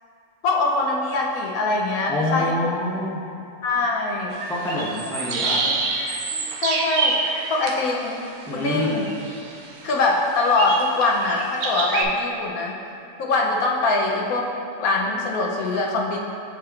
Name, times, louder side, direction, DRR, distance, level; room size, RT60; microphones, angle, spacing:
voice 1, 0.4-2.5 2.9-3.0 3.6-4.4 5.5-5.7 6.3-7.2 7.5-8.3 8.5-9.1 9.8-12.7 13.2-14.5 14.8-16.2, left 3 dB, 70° left, -1 dB, 1.0 m, -23 dB
voice 2, 2.1-3.2 4.5-5.6 8.5-8.9, left 1 dB, 5° left, -5 dB, 0.3 m, -26 dB
sound 1, 4.3-12.0, right 3 dB, 65° right, 0.6 m, -27 dB
7.3 x 6.3 x 2.4 m, 2.6 s
omnidirectional pair, 1.8 m